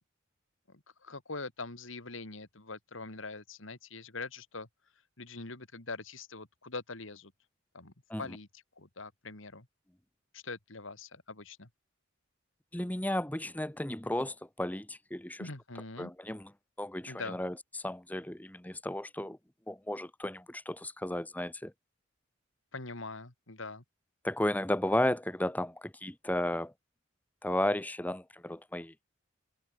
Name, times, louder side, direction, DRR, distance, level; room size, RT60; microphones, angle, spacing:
voice 1, 0.7-4.7 5.2-7.3 7.7-9.7 10.3-11.7 15.4-16.1 17.0-17.4 22.7-23.8, left 3 dB, 75° left, 2.7 m, -43 dB
voice 2, 12.7-15.5 16.0-16.5 16.8-19.4 19.7-21.7 24.2-26.7 27.4-28.9, left 1 dB, 10° left, 1.0 m, -34 dB
open air
head